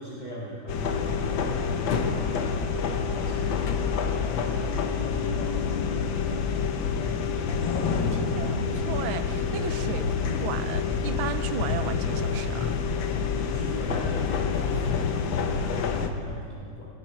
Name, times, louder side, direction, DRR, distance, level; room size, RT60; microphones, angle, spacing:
voice 1, 0.0-4.0 4.3-6.9 7.8-8.3 13.1-16.9, equal, 20° left, -5 dB, 1.9 m, -41 dB
sound 1, 0.7-16.1, left 5 dB, 70° left, 1.7 m, -27 dB
voice 2, 8.0-12.7, right 10 dB, 85° right, 12 dB, 1.5 m, -35 dB
20.0 x 16.5 x 4.4 m, 2.2 s
omnidirectional pair, 2.2 m